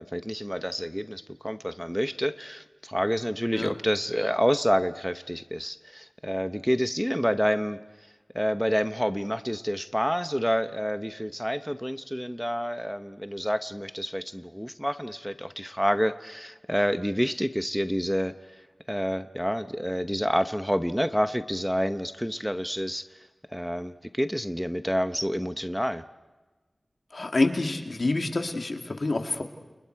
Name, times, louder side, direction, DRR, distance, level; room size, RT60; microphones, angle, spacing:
voice 1, 0.0-7.8 8.3-18.3 18.9-23.1 23.5-26.0, equal, ahead, 10 dB, 0.8 m, -28 dB
voice 2, 27.1-29.4, left 2 dB, 65° left, 4 dB, 2.3 m, -27 dB
29.5 x 29.0 x 4.7 m, 1.2 s
wide cardioid pair, 55°, 0 cm